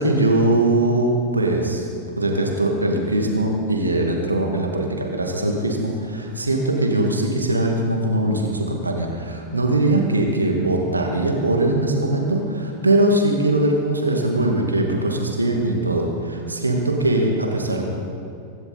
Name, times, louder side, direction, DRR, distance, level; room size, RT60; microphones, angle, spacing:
voice 1, 0.0-1.8 2.2-17.8, right 1 dB, 80° right, 1 dB, 2.3 m, -21 dB
24.0 x 12.5 x 4.3 m, 2.6 s
figure-of-eight pair, 90°, 0 cm